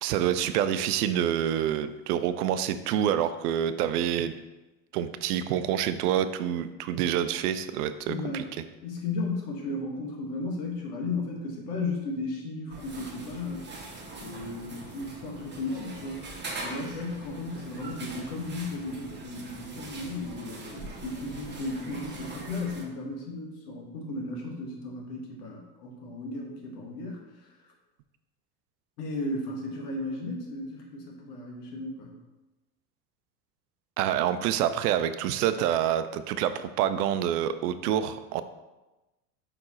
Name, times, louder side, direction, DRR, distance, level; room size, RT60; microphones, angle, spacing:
voice 1, 0.0-4.3 4.9-8.4 34.0-38.4, right 10 dB, 70° right, 11 dB, 0.6 m, -27 dB
voice 2, 8.1-8.4 8.8-13.7 14.2-16.3 16.6-27.5 29.0-32.2, left 2 dB, 70° left, 0 dB, 1.8 m, -35 dB
sound 1, 12.7-22.8, right 2 dB, 20° right, 1.4 m, -42 dB
5.4 x 4.4 x 4.3 m, 1.1 s
hypercardioid pair, 85°, 48 cm